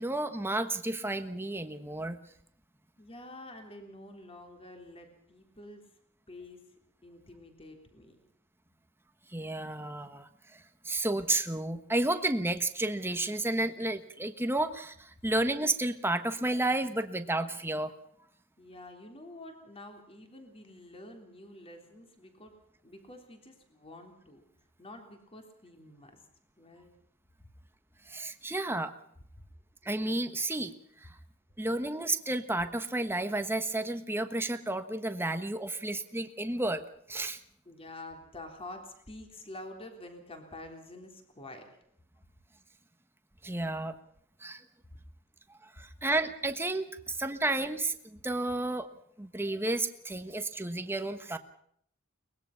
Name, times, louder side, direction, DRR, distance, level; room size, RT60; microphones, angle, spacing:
voice 1, 0.0-2.2 9.3-17.9 28.1-28.9 29.8-30.7 31.0-31.1 31.6-36.8 37.1-37.4 43.4-44.0 44.4-44.6 45.8-48.9 49.2-51.4, right 2 dB, 10° right, 8 dB, 1.3 m, -31 dB
voice 2, 3.0-5.8 6.3-6.6 7.0-8.2 18.6-22.5 22.8-24.4 24.8-26.2 26.6-26.9 35.7-35.8 37.7-41.6, left 1 dB, 25° left, 4 dB, 3.6 m, -48 dB
23.0 x 20.5 x 5.9 m, 0.68 s
head